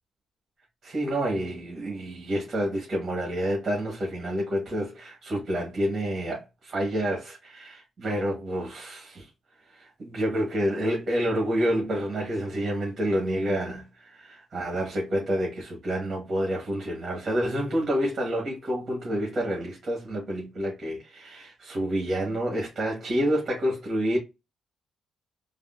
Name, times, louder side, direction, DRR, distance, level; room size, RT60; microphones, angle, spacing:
voice 1, 0.8-9.3 9.7-24.2, equal, 40° right, 1.2 m, -28 dB
3.4 x 2.0 x 2.4 m
cardioid pair, 90°, 0 cm